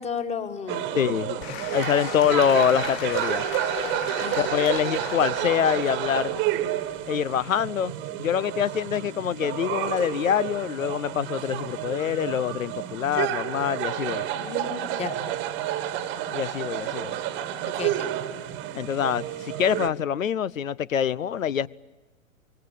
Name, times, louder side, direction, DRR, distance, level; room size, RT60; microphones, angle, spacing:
voice 1, 0.0-0.9 4.2-4.5 14.3-15.2 17.7-18.1, left 6 dB, 15° left, 1.8 m, -33 dB
sound 1, 0.7-19.9, right 12 dB, 30° right, 1.5 m, -30 dB
voice 2, 0.9-3.5 4.4-6.4 7.1-7.9 8.2-14.3 16.3-17.2 18.7-21.7, left 9 dB, 70° left, 0.8 m, -25 dB
Applause / Crowd, 1.4-7.7, left 12 dB, 45° left, 4.0 m, -38 dB
26.0 x 24.0 x 8.5 m
figure-of-eight pair, 110°, 41 cm